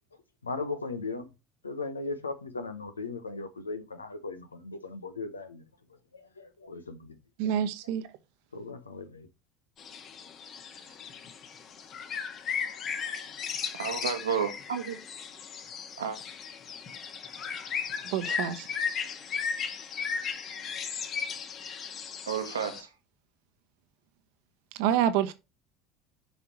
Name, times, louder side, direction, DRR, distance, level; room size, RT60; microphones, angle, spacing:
voice 1, 0.4-1.3 1.6-5.6 6.1-7.2 8.5-9.3, left 3 dB, 90° left, 1.1 m, -37 dB
voice 2, 7.4-8.0 18.0-18.7 24.8-25.3, right 10 dB, 65° right, 1.0 m, -27 dB
sound 1, 9.8-22.8, left 6 dB, 45° left, 1.5 m, -36 dB
voice 3, 13.8-15.0 16.0-16.2 22.3-22.9, right 7 dB, 85° right, 1.3 m, -31 dB
8.3 x 5.6 x 3.0 m
hypercardioid pair, 70°, 0 cm